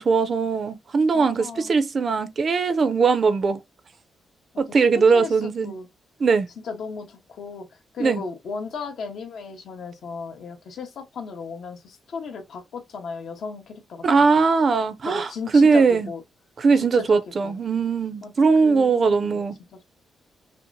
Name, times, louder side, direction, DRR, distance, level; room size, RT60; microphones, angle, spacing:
voice 1, 0.0-3.6 4.6-5.7 6.2-6.5 8.0-8.2 14.0-16.1 16.6-19.6, right 4 dB, 40° right, 0.5 m, -20 dB
voice 2, 1.1-1.7 4.7-5.9 6.6-14.4 15.0-16.2 16.7-17.6 18.2-18.3 18.6-19.4 19.7-19.8, left 5 dB, 65° left, 1.0 m, -36 dB
5.6 x 2.0 x 2.6 m
wide cardioid pair, 155°, 0 cm